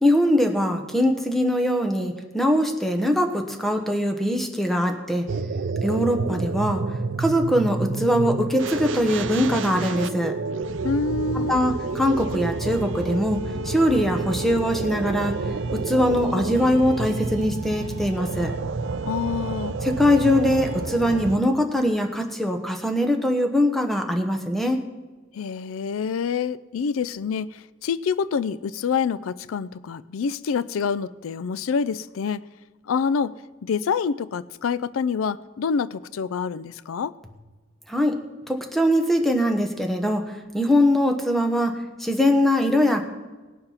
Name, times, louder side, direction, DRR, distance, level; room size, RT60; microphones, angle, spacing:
voice 1, 0.0-5.3 5.8-6.8 7.2-10.3 11.5-13.4 13.6-15.3 15.7-18.5 19.8-24.8 37.9-38.2 38.5-43.0, equal, ahead, 3 dB, 1.1 m, -22 dB
sound 1, 5.3-21.4, right 3 dB, 65° right, 0.5 m, -29 dB
voice 2, 10.8-11.6 19.1-19.8 25.3-32.4 32.9-33.3 33.6-37.1, left 6 dB, 90° left, 18 dB, 0.4 m, -26 dB
19.0 x 6.8 x 5.7 m, 1.2 s
head